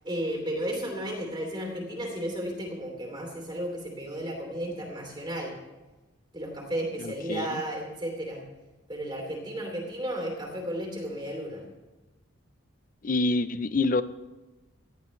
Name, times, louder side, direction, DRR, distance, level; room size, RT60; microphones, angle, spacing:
voice 1, 0.0-5.5 6.3-8.4 8.9-11.6, right 1 dB, 25° right, 1 dB, 2.9 m, -33 dB
voice 2, 7.0-7.6 13.0-14.0, left 2 dB, 40° left, 14 dB, 0.5 m, -27 dB
18.5 x 14.0 x 3.2 m, 1.1 s
head